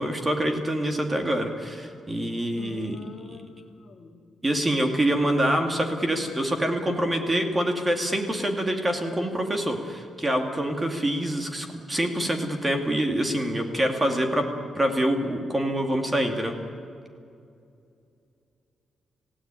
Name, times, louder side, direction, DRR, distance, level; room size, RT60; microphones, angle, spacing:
voice 1, 0.0-3.0 4.4-14.5 14.7-16.5, right 1 dB, 15° right, 4 dB, 2.3 m, -25 dB
voice 2, 2.5-4.2, left 3 dB, 50° left, 3 dB, 2.5 m, -43 dB
28.5 x 16.5 x 9.0 m, 2.4 s
wide cardioid pair, 150°, 0 cm